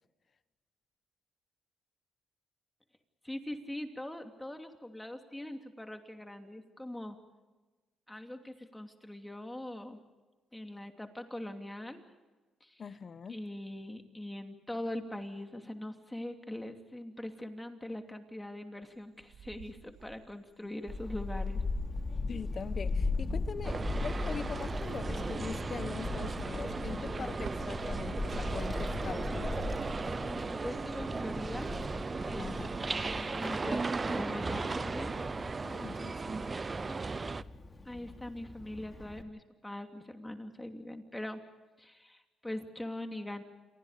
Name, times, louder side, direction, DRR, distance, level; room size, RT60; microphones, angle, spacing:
voice 1, 3.2-7.2 8.1-10.0 10.5-12.0 12.6-12.8 13.3-21.6 23.2-23.4 30.1-31.7 32.2-35.2 36.8-37.2 37.8-41.4 41.8-43.4, left 1 dB, 10° left, 2.9 m, -42 dB
voice 2, 12.8-13.4 22.3-29.7 32.4-32.8 35.6-36.5, left 5 dB, 45° left, 1.2 m, -42 dB
Cricket, 18.8-20.3 20.8-33.8 34.1-34.6, right 6 dB, 65° right, 2.2 m, -49 dB
Child speech kid speaking / Wind, 20.9-39.2, left 3 dB, 25° left, 3.0 m, -38 dB
sound 1, 23.6-37.4, right 4 dB, 30° right, 0.7 m, -36 dB
28.5 x 23.5 x 5.1 m
cardioid pair, 90°, 0 cm